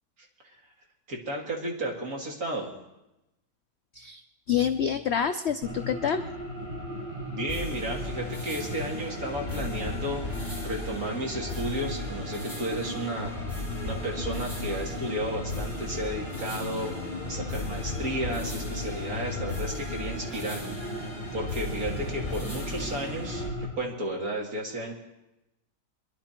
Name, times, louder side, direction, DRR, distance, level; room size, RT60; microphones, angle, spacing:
voice 1, 1.1-2.7 7.3-13.3 13.8-16.9 17.2-23.4 23.8-24.9, right 1 dB, 55° right, -1 dB, 2.8 m, -33 dB
voice 2, 4.5-6.3, left 8 dB, 75° left, 9 dB, 0.6 m, -27 dB
sound 1, 5.6-23.7, left 1 dB, 25° right, 5.7 m, -37 dB
sound 2, 7.5-23.5, left 2 dB, 5° left, 4.0 m, -37 dB
23.0 x 11.5 x 4.5 m, 0.95 s
omnidirectional pair, 1.8 m